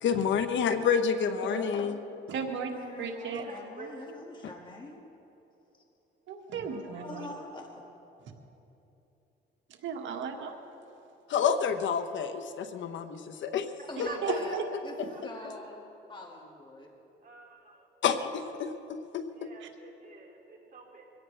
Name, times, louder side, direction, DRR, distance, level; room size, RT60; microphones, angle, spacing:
voice 1, 0.0-2.0 11.3-13.7 14.0-14.4 15.0-15.1 18.0-19.5, left 7 dB, 70° left, 9 dB, 0.9 m, -29 dB
voice 2, 1.4-2.0 2.7-5.0 7.0-7.8 13.9-14.6 14.8-15.0 15.2-16.9, left 2 dB, 25° left, 0 dB, 2.1 m, -44 dB
voice 3, 2.3-2.7 3.0-3.5 6.3-7.3 9.8-10.5 14.2-14.6 19.6-19.7, right 6 dB, 75° right, 3 dB, 1.7 m, -35 dB
voice 4, 3.2-4.0 6.5-7.4 14.0-14.4 15.1-15.7 17.2-17.9 19.3-21.1, right 4 dB, 45° right, 0 dB, 2.7 m, -47 dB
23.5 x 17.0 x 3.4 m, 2.9 s
cardioid pair, 90°, 20 cm